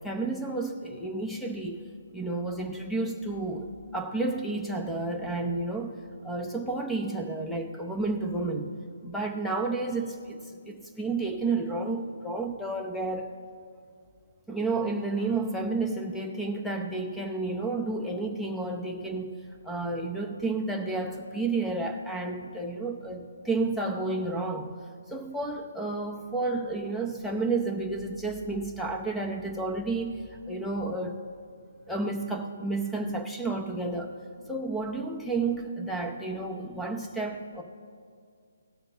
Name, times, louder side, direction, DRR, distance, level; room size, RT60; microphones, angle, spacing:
voice 1, 0.0-1.8 2.1-8.7 9.0-13.3 14.5-19.4 19.6-24.7 25.1-31.2 31.9-34.1 34.5-37.6, right 3 dB, ahead, 3 dB, 0.7 m, -31 dB
18.5 x 6.3 x 3.4 m, 2.2 s
hypercardioid pair, 170°, 0 cm